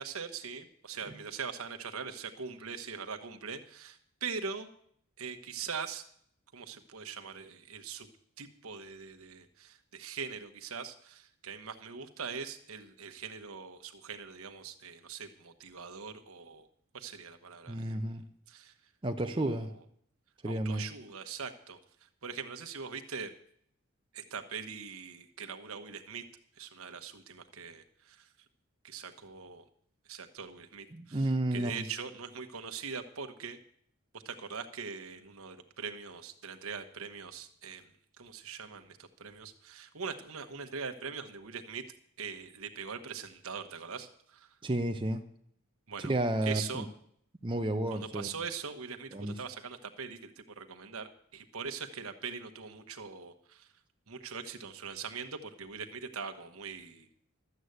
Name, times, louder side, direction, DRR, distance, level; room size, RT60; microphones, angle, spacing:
voice 1, 0.0-4.7 5.2-6.0 6.5-8.1 8.4-16.7 16.9-18.0 18.5-18.7 19.2-19.7 20.4-23.3 24.1-26.2 26.6-28.3 28.8-29.6 30.1-33.6 34.1-37.9 38.2-41.8 42.2-44.6 45.9-46.1 46.4-46.9 47.9-53.7 54.1-57.1, right 5 dB, 75° right, 6 dB, 1.2 m, -42 dB
voice 2, 17.7-18.2 19.0-19.7 20.4-20.9 30.9-31.8 44.6-45.2 46.0-46.8 47.4-48.3 49.1-49.3, right 1 dB, 20° right, 5 dB, 0.6 m, -31 dB
13.0 x 8.1 x 8.0 m, 0.65 s
head